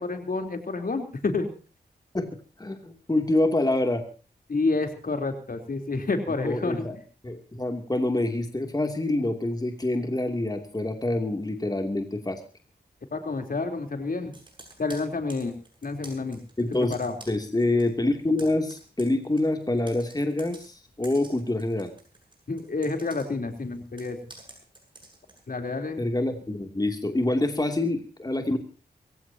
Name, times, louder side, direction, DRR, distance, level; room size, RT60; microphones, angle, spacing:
voice 1, 0.0-1.5 4.5-6.9 13.1-14.3 14.8-15.5 15.8-16.4 16.9-17.2 22.5-24.2 25.5-26.1, left 3 dB, 55° left, 5 dB, 3.7 m, -29 dB
voice 2, 2.6-4.0 6.4-7.0 7.2-12.4 16.6-16.9 17.3-21.9 26.0-28.6, left 2 dB, 20° left, 5 dB, 2.8 m, -26 dB
Computer keyboard, 14.3-17.9 18.2-25.5, right 2 dB, 30° right, 7.8 m, -50 dB
23.0 x 16.5 x 2.9 m, 0.37 s
cardioid pair, 60°, 17 cm